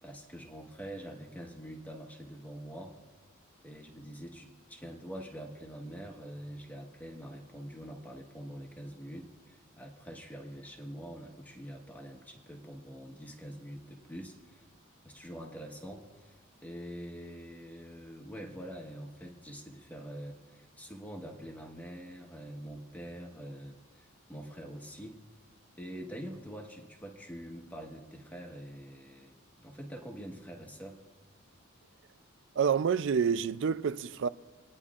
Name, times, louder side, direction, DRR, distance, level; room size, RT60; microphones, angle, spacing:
voice 1, 0.0-3.0 3.6-14.7 15.0-25.2 25.8-31.0, equal, 10° left, 1.2 m, -45 dB
voice 2, 32.6-34.3, right 7 dB, 60° right, 0.4 m, -28 dB
29.5 x 9.9 x 2.4 m
head